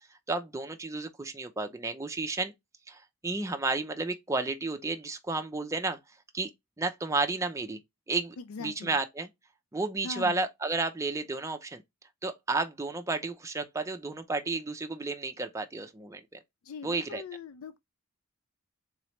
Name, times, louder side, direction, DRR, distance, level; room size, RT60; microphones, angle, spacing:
voice 1, 0.3-2.5 2.9-6.0 6.3-6.5 6.8-7.8 8.1-9.3 9.7-11.8 12.2-16.4 16.8-17.2, right 3 dB, 15° right, 0.5 m, -32 dB
voice 2, 8.4-9.0 10.0-10.4 16.6-17.8, left 5 dB, 65° left, 0.4 m, -41 dB
3.9 x 3.1 x 3.1 m
head